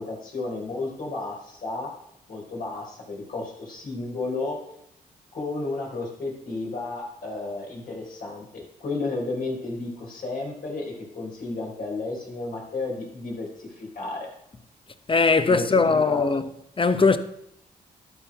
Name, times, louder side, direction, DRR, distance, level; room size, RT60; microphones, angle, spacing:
voice 1, 0.0-1.9 2.3-4.6 5.3-14.3 15.4-16.4, left 3 dB, 60° left, 3.9 m, -32 dB
voice 2, 15.1-16.5 16.8-17.2, left 4 dB, 35° left, 0.8 m, -20 dB
12.0 x 4.4 x 6.0 m
supercardioid pair, 55°, 16 cm